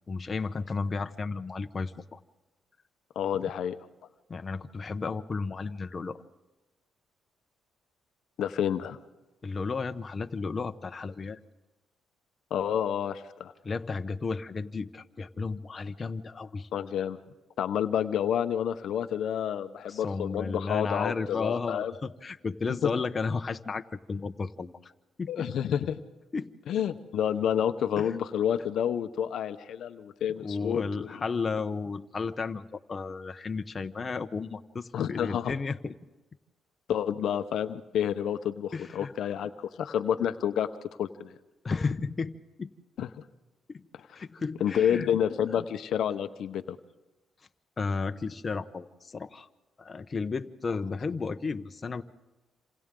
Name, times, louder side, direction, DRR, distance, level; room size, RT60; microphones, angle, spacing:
voice 1, 0.1-2.2 4.3-6.2 9.4-11.4 13.6-16.7 19.9-24.9 25.2-25.5 26.3-26.5 28.0-28.2 30.4-35.9 38.7-39.1 41.6-42.3 42.6-42.7 43.7-43.8 44.1-45.1 47.8-49.5 49.8-52.0, left 4 dB, 35° left, 8 dB, 0.9 m, -33 dB
voice 2, 3.1-3.7 8.4-9.0 12.5-13.5 16.7-17.2 17.6-21.9 22.7-22.9 25.3-26.0 26.7-31.1 34.9-35.5 36.9-40.7 41.0-41.4 43.0-43.1 44.6-46.8, left 9 dB, 70° left, 10 dB, 0.8 m, -29 dB
27.5 x 27.5 x 3.8 m, 1.1 s
cardioid pair, 90°, 0 cm